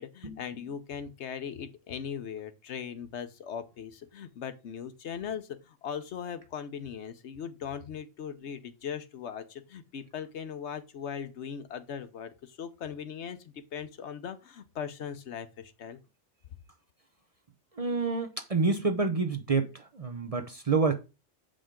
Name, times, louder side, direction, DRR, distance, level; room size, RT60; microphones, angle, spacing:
voice 1, 0.0-16.0, left 7 dB, 70° left, 1.1 m, -39 dB
voice 2, 17.8-20.9, right 4 dB, 35° right, 0.6 m, -28 dB
6.9 x 5.1 x 3.7 m
omnidirectional pair, 1.2 m